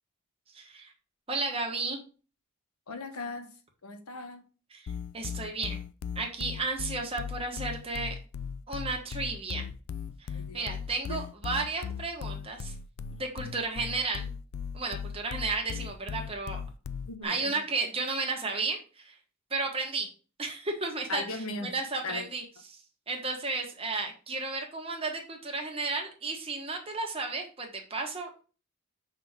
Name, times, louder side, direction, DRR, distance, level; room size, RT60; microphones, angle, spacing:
voice 1, 0.5-0.9 1.3-2.0 4.7-5.8 6.1-8.1 8.7-9.6 10.3-12.7 13.1-14.3 14.7-16.6 17.2-19.1 19.5-20.1 20.4-22.4 22.7-22.8 23.1-28.3, right 3 dB, 25° right, 1.3 m, -33 dB
voice 2, 2.9-3.5 3.8-4.4 10.3-10.7 11.1-11.2 17.1-17.6 21.1-21.7 22.0-22.3, left 3 dB, 85° left, 1.0 m, -38 dB
sound 1, 4.9-17.2, left 6 dB, 65° left, 0.4 m, -37 dB
5.9 x 3.6 x 5.7 m
head